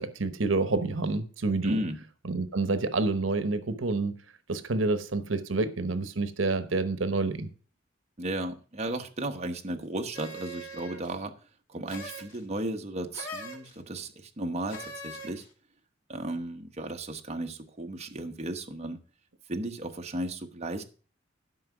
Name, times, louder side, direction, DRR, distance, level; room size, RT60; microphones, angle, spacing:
voice 1, 0.0-1.8 2.2-4.1 4.5-7.5, right 3 dB, 80° right, 1.0 m, -28 dB
voice 2, 1.6-2.0 8.2-15.4 16.1-19.0 19.5-20.8, right 1 dB, 35° right, 1.1 m, -35 dB
sound 1, 10.1-11.1 11.9-12.4 13.1-13.7 14.7-15.5, equal, 90° left, 2.9 m, -41 dB
12.0 x 5.5 x 6.0 m
head